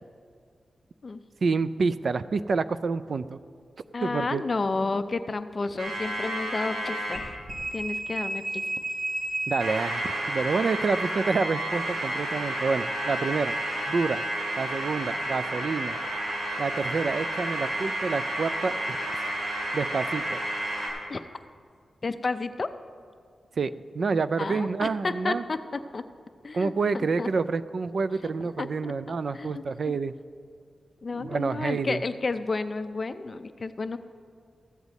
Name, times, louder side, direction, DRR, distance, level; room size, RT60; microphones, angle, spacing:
voice 1, 1.4-3.4 4.0-4.4 9.5-13.6 13.9-14.2 14.6-16.0 16.6-19.0 19.7-20.4 23.6-25.4 26.5-30.1 31.2-32.0, right 4 dB, 60° right, 13 dB, 0.3 m, -28 dB
voice 2, 3.9-7.3 7.7-8.6 21.1-21.2 22.0-22.7 24.4-25.6 25.9-26.0 26.4-27.3 28.2-28.3 28.6-28.9 29.3-29.6 31.0-34.0, left 3 dB, 40° left, 11 dB, 0.4 m, -31 dB
sound 1, 5.8-7.2 7.5-20.9, right 1 dB, 90° right, 3.1 m, -31 dB
14.5 x 8.0 x 4.1 m, 2.1 s
wide cardioid pair, 110°, 0 cm